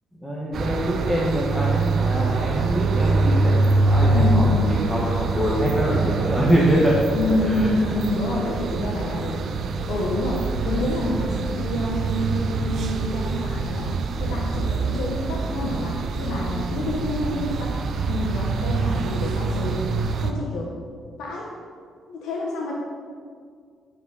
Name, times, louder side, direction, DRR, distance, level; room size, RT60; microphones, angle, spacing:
voice 1, 0.2-6.9 7.4-7.7, equal, 10° left, -6 dB, 1.5 m, -24 dB
sound 1, 0.5-20.3, right 3 dB, 60° right, 0.6 m, -24 dB
voice 2, 4.1-4.7 7.1-9.4 9.9-13.9 14.2-17.8 18.1-19.9 20.2-20.8 21.2-21.5 22.1-22.7, left 2 dB, 80° left, -4 dB, 1.1 m, -28 dB
10.0 x 5.0 x 4.1 m, 2.1 s
cardioid pair, 90°, 0 cm